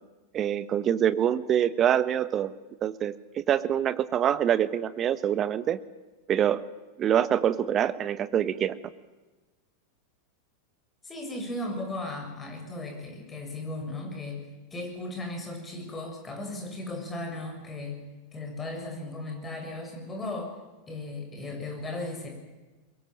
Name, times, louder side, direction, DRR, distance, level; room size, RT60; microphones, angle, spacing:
voice 1, 0.3-2.5 2.8-5.8 6.3-6.6 7.0-8.8, right 10 dB, 30° right, 15 dB, 1.2 m, -25 dB
voice 2, 11.0-14.4 14.7-18.0 18.3-20.5 20.9-22.3, left 2 dB, 15° left, 3 dB, 6.8 m, -36 dB
23.5 x 22.5 x 7.5 m, 1.2 s
figure-of-eight pair, 90°, 0 cm